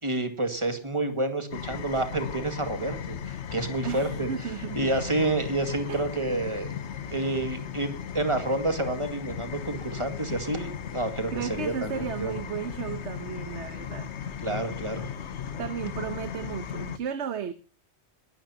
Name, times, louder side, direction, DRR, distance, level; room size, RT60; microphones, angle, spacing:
voice 1, 0.0-4.3 4.7-6.7 7.1-12.3 14.4-15.1, right 2 dB, 25° right, 7 dB, 2.2 m, -29 dB
sound 1, 1.5-17.0, left 8 dB, 80° left, 1.2 m, -36 dB
voice 2, 3.8-4.9 5.9-6.0 11.3-14.1 15.6-17.5, right 8 dB, 90° right, 11 dB, 1.2 m, -34 dB
21.5 x 12.5 x 2.8 m, 0.31 s
omnidirectional pair, 1.1 m